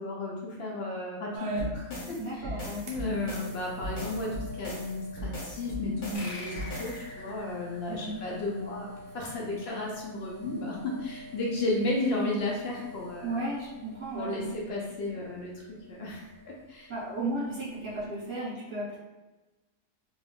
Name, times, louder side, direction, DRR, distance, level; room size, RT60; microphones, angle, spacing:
voice 1, 0.0-2.5 2.9-13.4 14.1-16.9, left 2 dB, 80° left, -2 dB, 0.5 m, -33 dB
sound 1, 1.3-18.1, equal, 60° right, 0.6 m, -46 dB
sound 2, 1.6-7.1, left 1 dB, 40° left, 0.8 m, -38 dB
voice 2, 2.2-2.8 7.9-8.2 13.2-14.6 16.9-19.0, right 2 dB, 20° right, -9 dB, 1.2 m, -34 dB
sound 3, 6.1-9.2, left 1 dB, 65° left, 1.0 m, -44 dB
2.6 x 2.6 x 3.3 m, 1.1 s
omnidirectional pair, 1.7 m